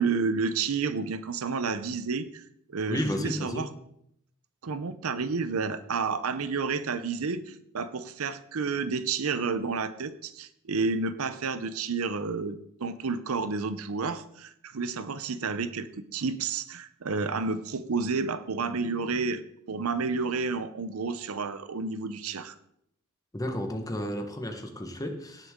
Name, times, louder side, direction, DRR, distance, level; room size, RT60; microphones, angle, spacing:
voice 1, 0.0-2.4 2.7-3.7 4.6-19.4 19.7-22.5, right 4 dB, 70° right, 13 dB, 0.7 m, -30 dB
voice 2, 2.9-3.7 23.3-25.5, left 1 dB, 15° left, 4 dB, 1.2 m, -32 dB
17.5 x 6.8 x 3.7 m, 0.74 s
head